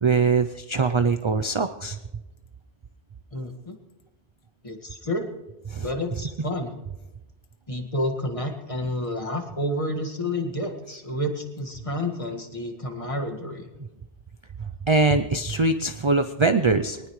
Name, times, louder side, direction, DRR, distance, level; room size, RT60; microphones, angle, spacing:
voice 1, 0.0-2.0 5.7-5.9 14.9-17.0, right 3 dB, 40° right, 8 dB, 0.5 m, -22 dB
voice 2, 3.3-3.8 4.6-5.3 5.8-6.7 7.7-13.7, left 1 dB, 30° left, 3 dB, 1.9 m, -30 dB
23.0 x 19.0 x 3.2 m, 1.0 s
omnidirectional pair, 1.2 m